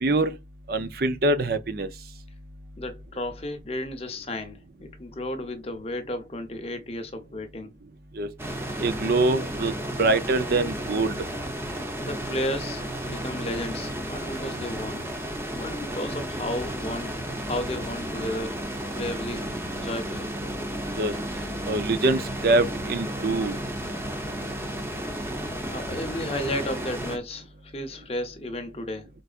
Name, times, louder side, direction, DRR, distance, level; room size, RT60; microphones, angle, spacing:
voice 1, 0.0-0.3 0.7-1.9 8.2-8.3 8.8-9.7 10.0-11.2 21.0-21.1 21.7-23.6, right 2 dB, 50° right, 0.6 m, -24 dB
voice 2, 2.8-7.7 12.0-17.2 17.4-18.6 18.9-20.3 25.7-29.1, left 1 dB, 30° left, 0.8 m, -33 dB
sound 1, 8.4-27.2, right 1 dB, 15° right, 0.8 m, -33 dB
sound 2, 16.3-26.4, right 1 dB, 80° right, 1.6 m, -42 dB
4.6 x 3.9 x 2.5 m
head